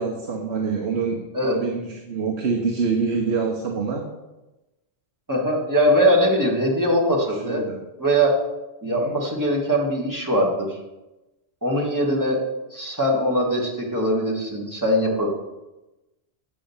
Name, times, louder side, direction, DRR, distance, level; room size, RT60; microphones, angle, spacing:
voice 1, 0.0-4.0 7.4-7.8 9.0-9.1, right 5 dB, 70° right, 2 dB, 1.3 m, -26 dB
voice 2, 5.3-7.6 8.0-8.4 8.8-10.8 11.6-12.4 12.7-15.3, equal, 15° right, -2 dB, 1.9 m, -21 dB
9.0 x 5.1 x 7.1 m, 1.0 s
omnidirectional pair, 1.2 m